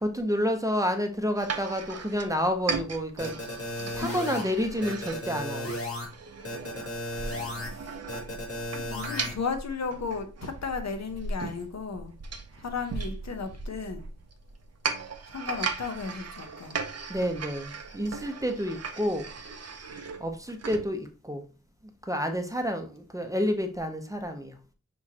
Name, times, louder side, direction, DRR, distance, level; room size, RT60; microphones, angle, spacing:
voice 1, 0.0-3.4 3.9-5.7 17.1-19.3 20.2-21.4 22.0-24.6, equal, 10° right, 0.6 m, -29 dB
sound 1, 1.3-20.9, right 4 dB, 55° right, 0.6 m, -38 dB
sound 2, 3.2-4.4 4.8-6.1 6.4-7.7 8.1-9.3, left 1 dB, 50° left, 1.8 m, -34 dB
voice 2, 7.3-7.9 8.7-12.1 12.5-14.1 15.3-16.8, left 5 dB, 65° left, 0.8 m, -35 dB
6.2 x 3.1 x 2.8 m
wide cardioid pair, 100°, 30 cm